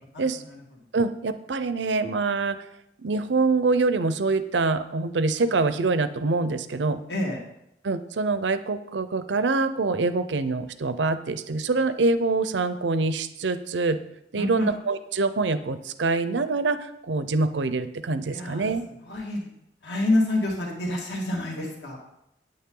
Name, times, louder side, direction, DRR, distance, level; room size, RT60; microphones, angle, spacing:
voice 1, 0.1-0.6 7.1-7.4 14.4-14.7 18.2-18.6 19.0-19.5 19.8-22.0, left 2 dB, 70° left, -1 dB, 2.1 m, -27 dB
voice 2, 0.9-2.6 3.0-7.0 7.8-14.0 14.3-18.8, right 3 dB, 80° right, 12 dB, 0.6 m, -25 dB
9.0 x 8.6 x 3.8 m, 0.81 s
head